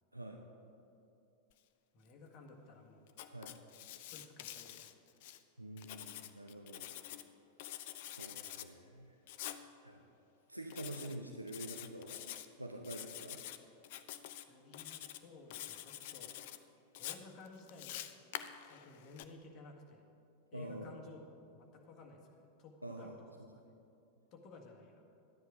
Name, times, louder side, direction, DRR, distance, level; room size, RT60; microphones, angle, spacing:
voice 1, 0.1-0.4 3.3-3.5 5.6-6.9 8.1-9.1 9.8-10.0 10.5-12.3 12.6-13.4 20.5-21.0 22.8-23.2, right 1 dB, 85° right, 2 dB, 0.7 m, -47 dB
voice 2, 1.9-3.1 3.9-5.0 14.3-16.3 17.0-18.0 18.6-20.0 20.5-23.2 24.3-25.0, left 3 dB, 35° left, 1 dB, 1.7 m, -55 dB
Writing, 3.1-5.4 5.8-7.2 7.6-8.7 9.3-9.6 10.7-11.2 11.5-12.4 12.8-13.6 13.8-14.4 14.7-15.2 15.5-16.6 16.9-19.2, left 12 dB, 50° left, 0.5 m, -47 dB
12.0 x 10.0 x 5.0 m, 2.7 s
figure-of-eight pair, 90°, 0 cm